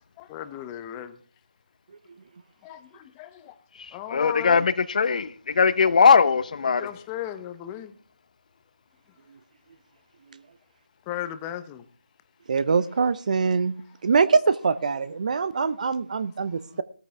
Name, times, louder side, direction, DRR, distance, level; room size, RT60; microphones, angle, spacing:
voice 1, 0.2-1.2 2.6-3.5 3.9-4.7 6.8-7.9 11.1-11.8, left 11 dB, 15° left, 0.8 m, -36 dB
voice 2, 4.1-6.9, left 5 dB, 45° left, 0.9 m, -20 dB
voice 3, 12.5-13.8 14.0-16.8, right 5 dB, 45° right, 0.7 m, -23 dB
17.0 x 13.5 x 3.5 m
figure-of-eight pair, 155°, 6 cm